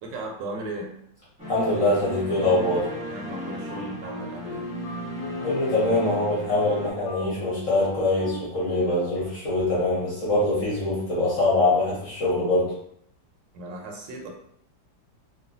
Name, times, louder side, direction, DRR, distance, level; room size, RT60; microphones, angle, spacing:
voice 1, 0.0-1.0 3.1-4.6 13.5-14.3, right 2 dB, 75° right, 0 dB, 1.2 m, -36 dB
sound 1, 1.4-6.9, equal, 5° right, 0.7 m, -36 dB
voice 2, 1.5-2.9 5.4-12.7, left 2 dB, 50° left, -7 dB, 1.1 m, -23 dB
Wind instrument woodwind instrument, 3.3-9.2, left 3 dB, 90° left, 1.4 m, -40 dB
3.0 x 2.2 x 2.5 m, 0.71 s
omnidirectional pair, 2.1 m